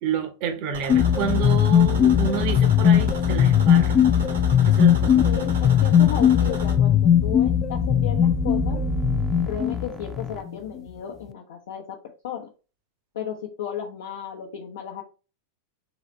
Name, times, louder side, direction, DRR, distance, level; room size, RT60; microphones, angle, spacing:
voice 1, 0.0-4.0 4.7-5.4, right 7 dB, 45° right, 0.9 m, -29 dB
sound 1, 0.7-6.8, right 4 dB, 65° right, 1.1 m, -36 dB
sound 2, 0.9-10.5, left 9 dB, 30° left, 0.3 m, -19 dB
voice 2, 5.1-8.8 9.5-12.0 12.2-12.5 13.1-15.0, left 9 dB, 60° left, 0.7 m, -34 dB
sound 3, 5.7-10.4, right 4 dB, 5° right, 0.6 m, -33 dB
3.9 x 3.2 x 3.0 m
figure-of-eight pair, 90°, 0 cm